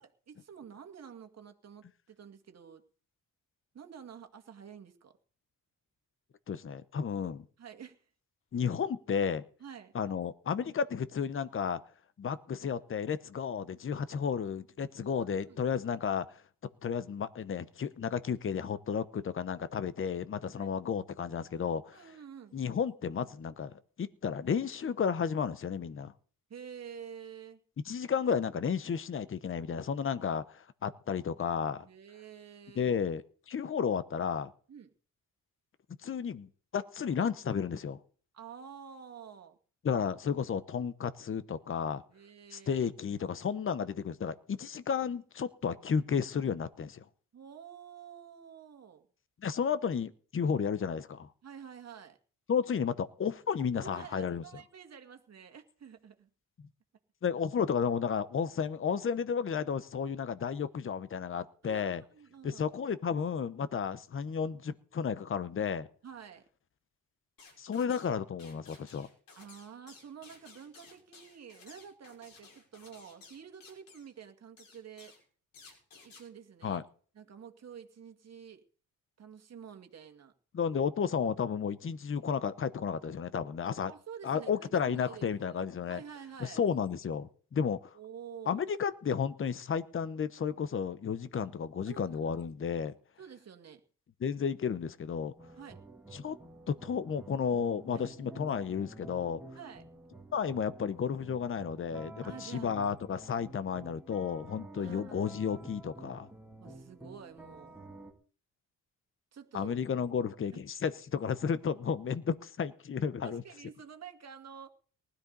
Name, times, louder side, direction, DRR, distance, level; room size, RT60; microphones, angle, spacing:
voice 1, 0.0-2.8 3.7-5.2 7.6-8.1 9.6-9.9 15.0-15.6 20.5-20.7 21.9-22.6 26.5-27.6 31.9-33.0 34.7-34.9 38.3-39.6 42.1-42.9 47.3-49.1 51.4-52.2 53.8-56.3 61.6-62.6 66.0-66.4 69.4-75.2 76.0-76.8 77.1-78.6 79.2-80.3 83.9-86.6 87.9-88.6 91.9-92.5 93.2-93.8 95.6-95.8 97.9-98.4 99.5-99.9 102.2-102.7 104.8-105.2 106.6-107.8 109.3-109.7 110.5-110.6 113.2-114.7, right 7 dB, 50° right, 6 dB, 2.1 m, -49 dB
voice 2, 6.5-7.5 8.5-9.4 9.9-11.8 12.2-16.4 16.8-22.1 22.5-26.1 27.9-31.9 32.8-34.5 36.0-38.0 39.8-42.0 42.5-47.0 49.4-51.3 52.5-54.4 57.2-62.0 62.4-65.9 67.6-69.1 76.6-76.8 80.5-83.9 84.2-86.0 86.4-88.0 88.5-92.9 94.2-95.3 96.1-96.4 96.7-99.4 100.3-106.3 109.5-113.4, left 7 dB, 40° left, 14 dB, 0.9 m, -33 dB
sound 1, 67.4-68.1 68.4-74.1 74.6-75.2 75.5-76.3, left 4 dB, 80° left, 5.6 m, -56 dB
sound 2, 95.4-108.1, right 2 dB, 5° right, 2.4 m, -50 dB
19.5 x 13.0 x 4.0 m, 0.43 s
cardioid pair, 130°, 33 cm